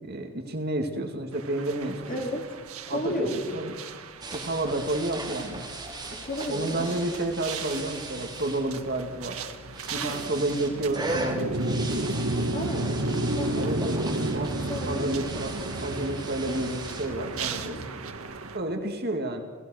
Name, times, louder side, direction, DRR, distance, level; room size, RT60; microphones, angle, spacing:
voice 1, 0.0-2.0 2.9-3.7 4.3-5.7 6.5-9.4 9.9-11.8 13.6-14.1 14.3-14.5 14.8-15.6 15.8-17.8 18.5-19.4, right 2 dB, 45° right, 5 dB, 2.2 m, -30 dB
sound 1, 1.3-18.6, right 2 dB, 80° right, 1.6 m, -33 dB
voice 2, 2.1-2.5 2.9-3.6 6.1-7.0 10.0-10.3 12.5-13.0 13.3-13.7 14.7-15.1 17.5-17.8, equal, 40° left, 1 dB, 4.0 m, -33 dB
sound 2, 4.2-17.6, right 2 dB, 20° right, 3.4 m, -38 dB
29.0 x 17.0 x 6.5 m, 1.4 s
head